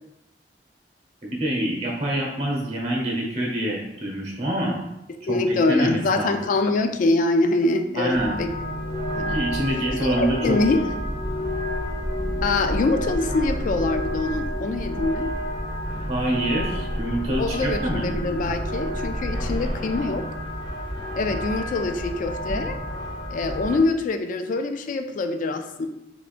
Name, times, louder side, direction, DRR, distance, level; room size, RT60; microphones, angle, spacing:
voice 1, 1.2-4.8 5.3-6.4 7.9-8.4 9.3-10.6 16.1-18.0, right 1 dB, 40° right, -2 dB, 1.1 m, -26 dB
voice 2, 5.3-8.5 9.2-9.4 10.1-10.8 12.4-15.3 17.4-20.3 21.2-22.8 23.3-25.9, left 3 dB, 50° left, 7 dB, 0.3 m, -24 dB
sound 1, 8.1-23.8, equal, 25° left, 0.9 m, -29 dB
3.5 x 3.5 x 2.4 m, 0.89 s
head